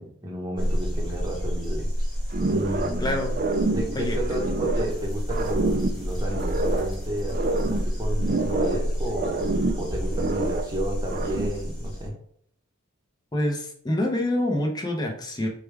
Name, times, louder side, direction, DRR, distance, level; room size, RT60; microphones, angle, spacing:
voice 1, 0.0-1.9 2.5-3.1 3.7-12.2, equal, 15° right, -2 dB, 0.9 m, -32 dB
sound 1, 0.6-12.1, equal, 5° left, 1.4 m, -29 dB
sound 2, 2.3-3.0 3.3-5.0 5.3-7.0 7.3-8.9 9.2-10.7 11.0-11.7, right 3 dB, 40° right, 0.3 m, -27 dB
voice 2, 3.0-3.3 3.9-4.2 13.3-15.5, left 1 dB, 20° left, 1 dB, 0.7 m, -26 dB
5.0 x 2.3 x 3.4 m, 0.63 s
head